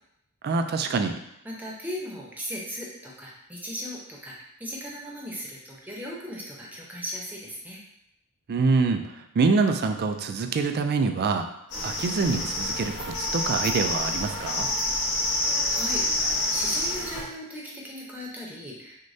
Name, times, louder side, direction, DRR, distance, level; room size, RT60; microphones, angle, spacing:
voice 1, 0.4-1.2 8.5-11.5 11.8-14.7, right 4 dB, 45° right, 6 dB, 0.3 m, -25 dB
voice 2, 1.4-7.8 15.4-19.0, equal, 10° right, -4 dB, 0.7 m, -37 dB
sound 1, 11.7-17.2, left 1 dB, 80° left, 1.3 m, -27 dB
6.2 x 2.2 x 2.7 m, 0.80 s
head